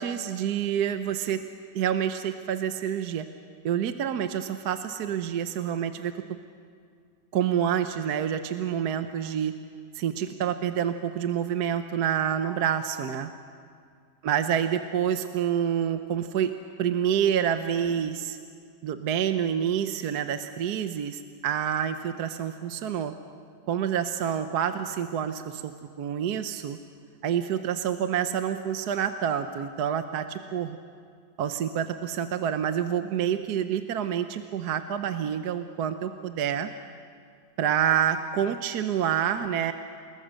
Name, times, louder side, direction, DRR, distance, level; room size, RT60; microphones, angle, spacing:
voice 1, 0.0-1.4 1.7-3.2 3.6-6.1 7.3-9.5 9.9-13.3 14.2-16.5 16.8-18.4 18.8-23.1 23.7-25.7 26.0-26.8 27.2-30.8 31.4-36.7 37.6-39.7, right 9 dB, 65° right, 8 dB, 1.2 m, -27 dB
29.0 x 20.5 x 6.5 m, 2.2 s
omnidirectional pair, 2.0 m